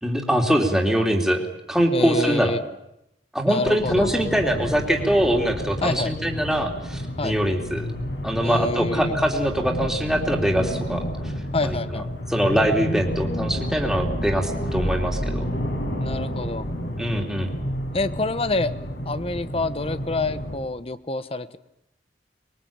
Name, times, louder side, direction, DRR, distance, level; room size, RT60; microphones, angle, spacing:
voice 1, 0.0-1.4 1.7-2.6 3.3-7.9 8.2-11.0 11.6-11.8 12.3-15.5 17.0-17.5, equal, 5° right, 1 dB, 3.1 m, -23 dB
voice 2, 1.9-2.6 3.5-4.1 5.8-6.1 7.2-7.4 8.4-9.1 11.5-12.1 16.0-16.6 17.9-18.7 19.1-21.6, left 2 dB, 35° left, 13 dB, 1.1 m, -27 dB
sound 1, 3.8-20.6, equal, 70° left, 6.0 m, -30 dB
25.0 x 22.0 x 8.9 m, 0.83 s
head